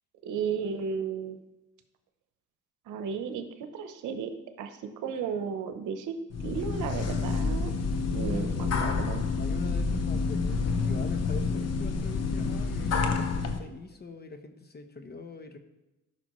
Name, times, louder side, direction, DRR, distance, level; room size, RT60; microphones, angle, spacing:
voice 1, 0.2-1.4 2.9-3.5 3.7-4.3 4.6-6.2 6.4-7.7 8.1-9.2, right 6 dB, 85° right, 8 dB, 0.9 m, -34 dB
sound 1, 6.3-13.6, left 4 dB, 55° left, 0.9 m, -28 dB
voice 2, 8.1-15.6, left 3 dB, 35° left, 7 dB, 0.9 m, -44 dB
12.5 x 6.0 x 3.1 m, 0.97 s
cardioid pair, 90°, 30 cm